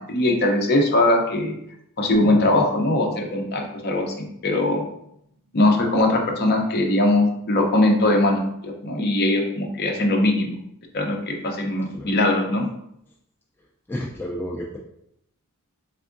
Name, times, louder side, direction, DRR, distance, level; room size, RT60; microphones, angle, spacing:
voice 1, 0.0-1.5 2.0-4.8 5.5-10.6 10.9-12.7, left 1 dB, 45° left, 2 dB, 0.6 m, -21 dB
sound 1, 2.1-6.1 6.4-6.5, right 2 dB, 20° right, 1.2 m, -39 dB
voice 2, 13.9-14.8, equal, 10° left, -3 dB, 0.3 m, -31 dB
3.5 x 3.5 x 2.5 m, 0.75 s
head